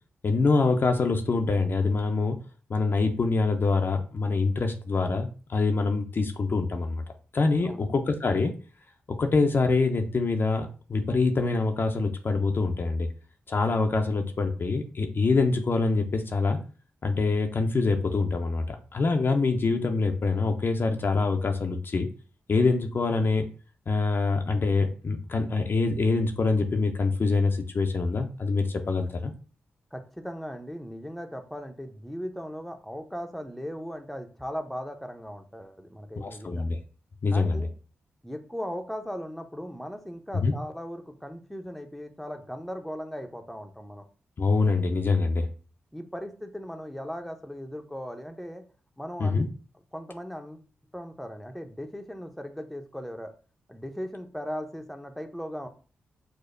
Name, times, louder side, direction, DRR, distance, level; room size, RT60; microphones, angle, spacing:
voice 1, 0.2-2.4 2.7-7.0 7.3-8.5 9.2-13.1 13.5-16.6 17.0-22.1 22.5-23.4 23.9-29.3 36.2-36.8 37.2-37.7 40.3-40.5 44.4-45.5 49.2-49.5, left 3 dB, 50° left, 5 dB, 0.5 m, -25 dB
voice 2, 29.9-36.6 37.3-37.7 38.2-44.0 45.9-48.6 49.0-49.5 49.9-50.6 50.9-53.3 53.7-55.7, equal, ahead, 5 dB, 0.6 m, -38 dB
4.9 x 2.0 x 2.5 m, 0.38 s
supercardioid pair, 40°, 5 cm